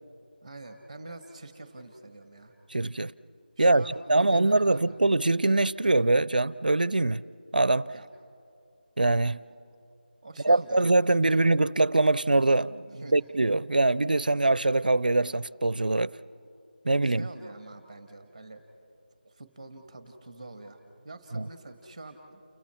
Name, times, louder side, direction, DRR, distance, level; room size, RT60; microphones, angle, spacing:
voice 1, 0.4-2.5 3.6-4.8 7.9-8.1 10.2-11.4 12.9-13.1 17.0-18.6 19.2-22.4, right 2 dB, 5° right, 1.1 m, -46 dB
voice 2, 2.7-3.1 3.6-7.2 7.5-7.9 9.0-9.4 10.4-16.2 16.8-17.3 21.3-21.5, right 2 dB, 60° right, 0.5 m, -23 dB
30.0 x 27.5 x 4.4 m
figure-of-eight pair, 180°, 5 cm